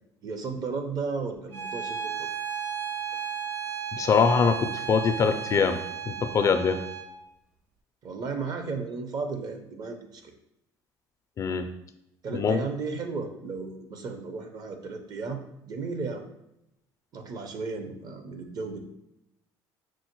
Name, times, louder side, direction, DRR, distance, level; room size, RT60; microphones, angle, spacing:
voice 1, 0.2-2.3 8.0-10.3 12.2-15.4 15.7-16.3 17.1-18.8, right 4 dB, 50° right, 6 dB, 0.6 m, -34 dB
Bowed string instrument, 1.5-7.1, right 7 dB, 90° right, 0.5 m, -34 dB
voice 2, 3.9-5.8 6.1-6.8 11.4-11.7 12.3-12.6, left 5 dB, 40° left, 8 dB, 0.4 m, -23 dB
6.1 x 2.1 x 2.9 m, 0.83 s
supercardioid pair, 100°, 9 cm